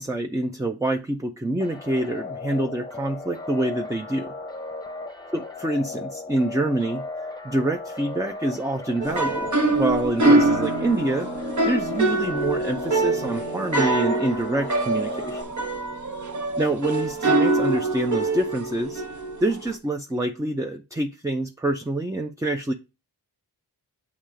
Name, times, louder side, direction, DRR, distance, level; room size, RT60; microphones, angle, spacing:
voice 1, 0.0-4.3 5.3-7.1 7.4-15.5 16.6-19.0 19.4-22.7, right 1 dB, 10° right, 4 dB, 0.5 m, -26 dB
sound 1, 1.6-15.4, left 3 dB, 10° left, 0.9 m, -36 dB
sound 2, 9.0-19.7, right 2 dB, 45° right, 1.1 m, -24 dB
7.3 x 2.8 x 4.9 m, 0.28 s
cardioid pair, 55°, 40 cm